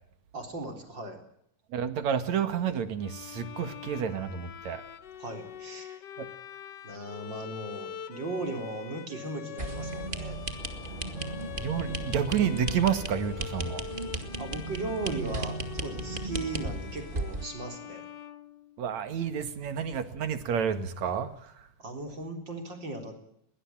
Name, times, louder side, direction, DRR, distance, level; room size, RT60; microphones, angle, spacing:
voice 1, 0.3-1.2 5.2-6.0 6.8-10.4 14.4-18.0 21.8-23.1, right 2 dB, 35° right, 4 dB, 4.4 m, -37 dB
voice 2, 1.7-4.8 6.2-6.3 11.6-13.8 18.8-21.7, right 8 dB, 65° right, 10 dB, 3.0 m, -30 dB
Bowed string instrument, 3.0-19.1, left 9 dB, 75° left, 0.9 m, -44 dB
sound 1, 9.6-17.4, right 2 dB, 20° right, 1.6 m, -35 dB
sound 2, 10.6-17.4, left 4 dB, 45° left, 2.9 m, -50 dB
21.5 x 19.0 x 8.8 m, 0.72 s
omnidirectional pair, 3.5 m